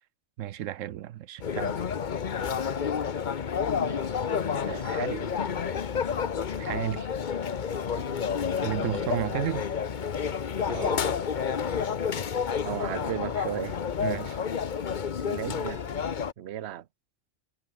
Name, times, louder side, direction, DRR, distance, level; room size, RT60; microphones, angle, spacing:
voice 1, 0.4-1.8 6.6-7.1 8.6-9.7 14.0-14.4, right 12 dB, 85° right, 1.0 m, -32 dB
sound 1, 1.4-16.3, left 7 dB, 45° left, 0.9 m, -30 dB
voice 2, 3.8-4.2 4.6-5.3 7.9-8.3 10.7-11.1 12.6-13.8 15.2-15.9 16.4-16.9, right 11 dB, 60° right, 1.0 m, -36 dB
omnidirectional pair, 1.3 m